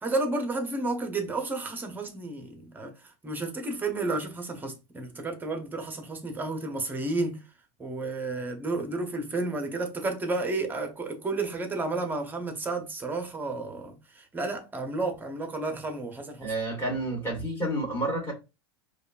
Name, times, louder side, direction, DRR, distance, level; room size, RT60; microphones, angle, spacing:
voice 1, 0.0-7.4 7.8-16.5, right 2 dB, 15° right, 0.8 m, -32 dB
voice 2, 16.4-18.3, right 1 dB, 15° left, 2.0 m, -30 dB
4.9 x 2.3 x 2.5 m
supercardioid pair, 120°, 14 cm